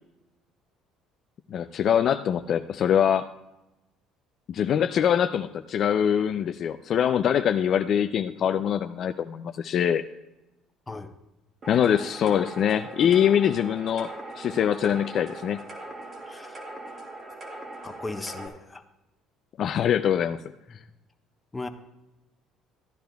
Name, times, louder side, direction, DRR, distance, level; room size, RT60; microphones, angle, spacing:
voice 1, 1.5-3.3 4.5-10.0 11.7-15.6 19.6-20.4, left 9 dB, 55° left, 8 dB, 0.4 m, -23 dB
sound 1, 11.6-18.5, right 2 dB, 40° right, 2.0 m, -41 dB
voice 2, 16.2-16.6 17.8-18.8 20.7-20.8 21.5-21.7, left 3 dB, 15° left, 6 dB, 0.9 m, -37 dB
15.0 x 10.5 x 2.3 m, 0.97 s
supercardioid pair, 90°, 0 cm